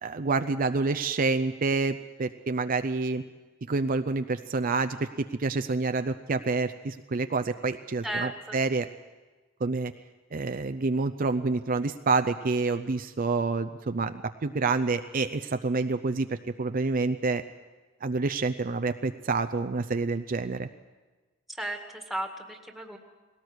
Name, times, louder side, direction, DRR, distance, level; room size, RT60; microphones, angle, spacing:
voice 1, 0.0-3.2 3.7-8.9 9.6-9.9 10.3-17.4 18.0-20.7, right 3 dB, 45° right, 9 dB, 0.5 m, -28 dB
voice 2, 8.0-8.6 21.6-23.0, right 1 dB, ahead, 3 dB, 1.9 m, -35 dB
20.0 x 18.0 x 8.1 m, 1.3 s
head